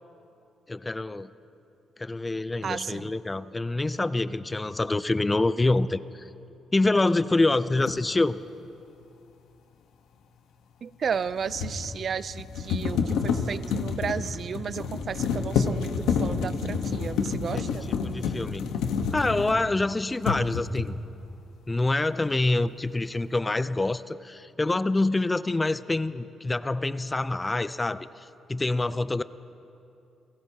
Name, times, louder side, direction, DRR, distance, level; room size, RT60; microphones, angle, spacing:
voice 1, 0.7-1.3 2.0-6.3 6.7-8.4 17.5-17.7 18.0-18.7 19.1-21.0 21.7-29.2, left 2 dB, 20° left, 15 dB, 0.4 m, -26 dB
voice 2, 2.6-3.1 10.8-17.9, right 6 dB, 50° right, 16 dB, 0.4 m, -33 dB
sound 1, 7.9-8.0 11.1-19.8 20.2-21.0, left 5 dB, 90° left, 1.1 m, -29 dB
29.0 x 17.0 x 2.9 m, 2.7 s
cardioid pair, 90°, 0 cm